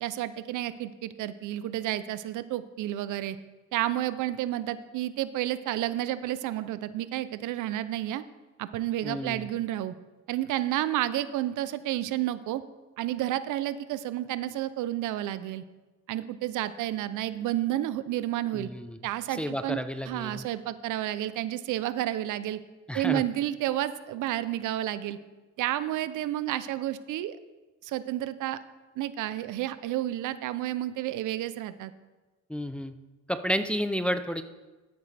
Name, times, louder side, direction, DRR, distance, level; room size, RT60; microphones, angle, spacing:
voice 1, 0.0-3.4 3.7-8.2 8.6-9.9 10.3-12.6 13.0-15.6 16.1-18.7 19.0-19.8 20.1-22.6 22.9-25.2 25.6-27.4 27.8-28.6 29.0-31.9, right 13 dB, 85° right, 14 dB, 0.6 m, -31 dB
voice 2, 9.0-9.5 18.5-19.0 19.3-20.4 22.9-23.2 32.5-33.0 33.3-34.4, equal, 5° left, 8 dB, 0.6 m, -31 dB
12.5 x 8.7 x 3.4 m, 1.2 s
cardioid pair, 90°, 30 cm